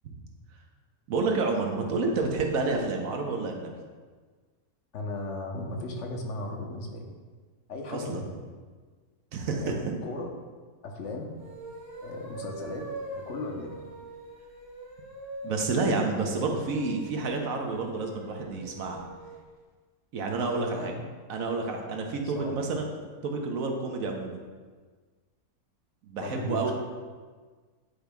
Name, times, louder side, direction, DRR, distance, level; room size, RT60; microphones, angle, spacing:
voice 1, 1.1-3.7 7.9-8.2 9.3-9.7 15.4-19.0 20.1-20.9 21.3-22.9 23.2-24.4 26.0-26.7, right 3 dB, 70° right, 2 dB, 1.2 m, -29 dB
voice 2, 4.9-7.0 7.7-8.3 9.5-10.3 10.8-11.3 12.0-12.9 13.1-13.7 20.5-21.0 22.2-22.7 26.2-26.7, left 2 dB, 55° left, 1 dB, 1.1 m, -36 dB
sound 1, 11.3-19.5, right 1 dB, 15° right, 1.1 m, -44 dB
9.8 x 5.1 x 2.3 m, 1.5 s
omnidirectional pair, 1.6 m